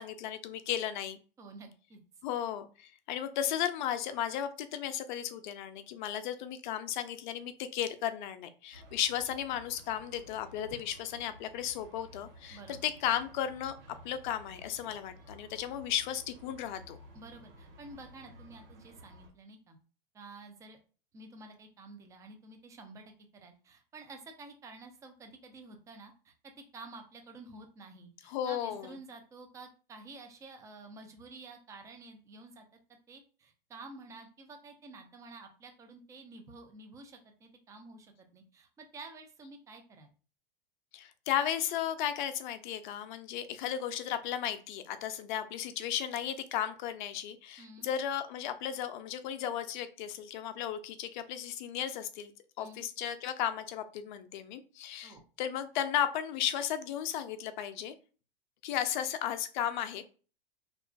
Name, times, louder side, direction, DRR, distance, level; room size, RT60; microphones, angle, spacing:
voice 1, 0.0-1.2 2.2-17.0 28.3-28.9 40.9-52.3 52.6-57.9 58.6-60.0, left 10 dB, 55° left, 11 dB, 0.4 m, -35 dB
voice 2, 1.4-2.0 12.5-12.9 17.1-19.8 20.1-20.8 21.1-26.3 26.7-32.7 33.1-40.1 47.6-47.9 52.6-52.8 55.0-55.2, right 3 dB, 10° right, 5 dB, 0.3 m, -50 dB
sound 1, 8.7-19.3, equal, 80° right, 1.2 m, -54 dB
2.4 x 2.3 x 2.2 m, 0.37 s
hypercardioid pair, 100°, 29 cm